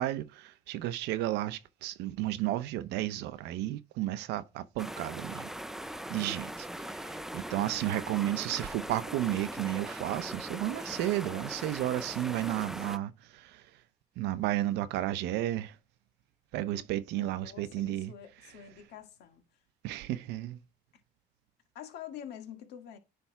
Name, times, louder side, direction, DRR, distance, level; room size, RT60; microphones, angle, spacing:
voice 1, 0.0-5.5 6.1-13.6 14.2-15.7 16.5-18.1 19.8-20.6, right 14 dB, 90° right, 0.7 m, -33 dB
sound 1, 4.8-13.0, right 1 dB, ahead, 0.5 m, -40 dB
voice 2, 17.2-19.4 21.8-23.0, left 9 dB, 80° left, 1.8 m, -47 dB
10.0 x 3.4 x 4.6 m
cardioid pair, 110°, 17 cm